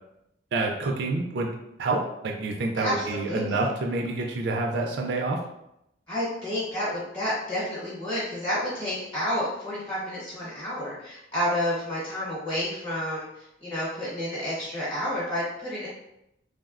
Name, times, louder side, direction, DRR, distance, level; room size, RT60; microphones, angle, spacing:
voice 1, 0.5-1.5 1.8-5.4, right 2 dB, 60° right, 1 dB, 0.3 m, -28 dB
voice 2, 2.7-3.6 6.1-15.9, equal, 15° left, -9 dB, 0.8 m, -30 dB
3.2 x 2.0 x 2.4 m, 0.82 s
head